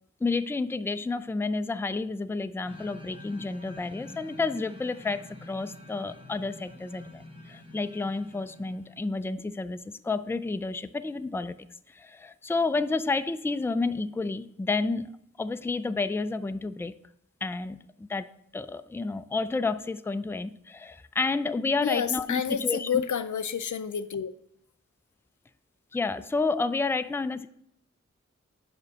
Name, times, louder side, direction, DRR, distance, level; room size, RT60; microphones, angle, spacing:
voice 1, 0.2-11.5 11.9-15.1 15.4-16.9 17.4-18.3 18.5-23.1 25.9-27.5, left 3 dB, 10° left, 12 dB, 0.3 m, -30 dB
sound 1, 2.6-9.0, left 1 dB, 20° right, 1.6 m, -47 dB
voice 2, 21.8-24.3, left 7 dB, 90° left, 12 dB, 0.5 m, -29 dB
5.3 x 5.2 x 6.5 m, 0.74 s
wide cardioid pair, 50°, 29 cm